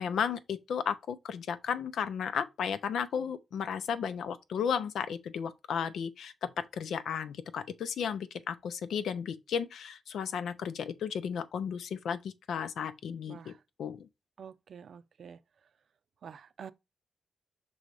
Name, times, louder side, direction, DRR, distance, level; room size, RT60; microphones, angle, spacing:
voice 1, 0.0-13.5 13.8-14.1, left 7 dB, 85° left, 0.7 m, -34 dB
voice 2, 13.3-13.6 14.4-15.7 16.2-16.7, right 7 dB, 60° right, 0.5 m, -48 dB
5.6 x 3.9 x 4.8 m
cardioid pair, 110°, 0 cm